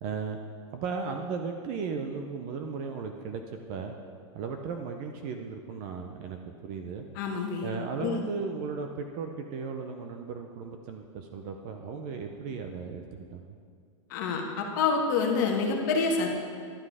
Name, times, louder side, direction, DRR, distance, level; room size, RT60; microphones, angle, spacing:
voice 1, 0.0-0.4 0.7-3.9 4.3-7.1 7.6-13.6, right 5 dB, 20° right, 4 dB, 0.4 m, -36 dB
voice 2, 7.1-8.2 14.1-16.3, left 4 dB, 35° left, 1 dB, 1.3 m, -27 dB
11.0 x 9.7 x 4.8 m, 2.2 s
supercardioid pair, 180°, 17 cm